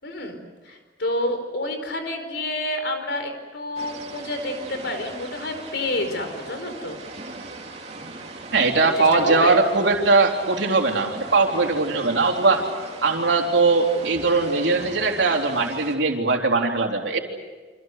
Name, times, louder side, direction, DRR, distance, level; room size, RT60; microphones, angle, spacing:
voice 1, 0.0-7.0 9.0-9.6, left 1 dB, 60° left, 6 dB, 4.7 m, -29 dB
sound 1, 3.8-16.0, right 3 dB, 35° right, 2.9 m, -39 dB
voice 2, 8.5-12.6 13.0-17.2, right 3 dB, 70° right, 2 dB, 3.7 m, -20 dB
29.5 x 26.0 x 6.7 m, 1.4 s
head